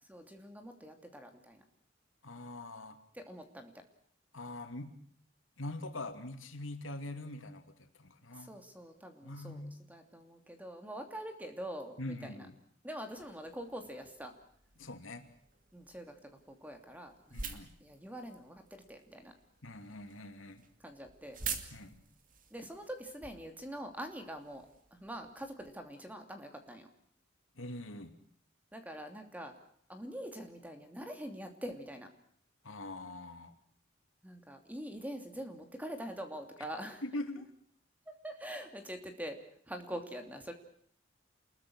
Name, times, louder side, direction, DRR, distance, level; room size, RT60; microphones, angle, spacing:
voice 1, 0.1-1.6 3.1-3.7 8.3-9.6 9.9-12.5 12.8-14.3 15.7-17.4 17.8-19.3 20.8-21.4 22.5-26.9 28.7-29.5 29.9-32.1 34.2-37.0 38.2-39.4 39.7-40.5, equal, 10° right, 5 dB, 2.9 m, -44 dB
voice 2, 2.2-3.0 4.3-4.9 5.6-8.5 9.2-9.7 12.0-12.5 14.8-15.3 17.3-17.7 19.6-20.7 21.7-22.0 27.6-28.1 32.6-33.5 37.0-37.5, left 1 dB, 90° left, 6 dB, 3.0 m, -43 dB
sound 1, 13.1-25.7, right 6 dB, 45° right, 2.6 m, -49 dB
28.5 x 21.5 x 6.5 m, 0.63 s
head